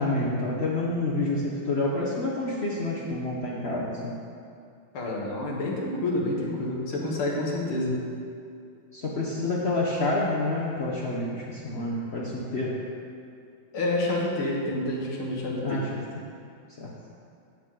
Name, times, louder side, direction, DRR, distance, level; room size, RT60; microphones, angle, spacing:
voice 1, 0.0-4.2 8.9-12.8 15.6-16.0 16.7-17.0, left 2 dB, 60° left, -5 dB, 0.6 m, -28 dB
voice 2, 4.9-8.0 13.7-15.8, left 1 dB, 80° left, -3 dB, 2.3 m, -28 dB
10.5 x 7.5 x 3.7 m, 2.4 s
omnidirectional pair, 2.4 m